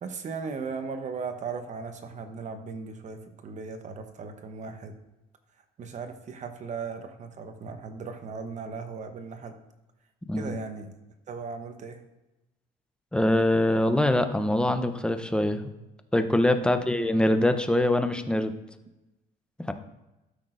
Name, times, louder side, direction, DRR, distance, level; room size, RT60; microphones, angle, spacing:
voice 1, 0.0-4.9 5.8-9.5 10.4-10.9 11.3-12.0 16.7-16.9, right 5 dB, 45° right, 7 dB, 0.9 m, -37 dB
voice 2, 13.1-15.7 16.1-18.5 19.7-19.8, left 1 dB, 5° left, 8 dB, 0.6 m, -24 dB
13.0 x 6.0 x 2.6 m, 0.98 s
cardioid pair, 110°, 17 cm